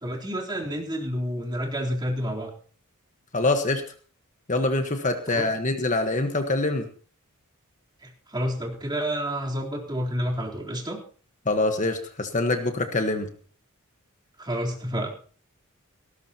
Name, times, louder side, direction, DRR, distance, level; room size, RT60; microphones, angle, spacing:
voice 1, 0.0-2.5 5.3-5.5 8.3-11.0 14.4-15.1, equal, 20° right, -2 dB, 3.7 m, -29 dB
voice 2, 3.3-3.8 4.5-6.9 11.4-13.3, left 2 dB, 35° left, 6 dB, 1.4 m, -24 dB
18.5 x 18.0 x 3.0 m, 0.42 s
head